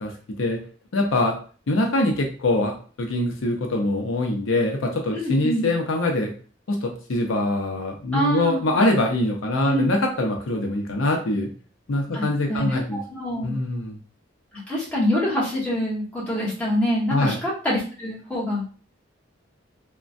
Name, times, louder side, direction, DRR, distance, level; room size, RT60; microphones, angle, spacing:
voice 1, 0.9-1.4 1.7-2.7 3.0-6.3 6.7-11.5 11.9-13.0 13.4-14.0 17.1-17.4, left 2 dB, 80° left, 2 dB, 0.6 m, -23 dB
voice 2, 5.1-5.7 8.1-8.6 9.7-9.8 12.1-13.6 14.7-18.6, equal, 5° left, -7 dB, 1.2 m, -25 dB
3.2 x 2.1 x 2.5 m, 0.40 s
head